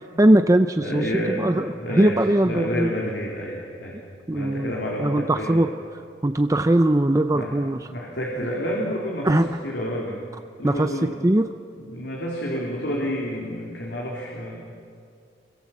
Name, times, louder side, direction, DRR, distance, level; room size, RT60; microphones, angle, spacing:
voice 1, 0.2-1.1 1.4-2.9 4.3-4.7 5.0-5.7 6.2-7.8 9.2-9.4 10.6-10.9 11.2-11.5, right 1 dB, 20° right, 8 dB, 0.6 m, -20 dB
voice 2, 0.8-4.0 4.3-5.6 7.3-7.5 7.9-10.2 10.6-11.2 11.7-14.7, equal, 70° left, -3 dB, 3.8 m, -29 dB
27.5 x 24.5 x 7.3 m, 2.3 s
head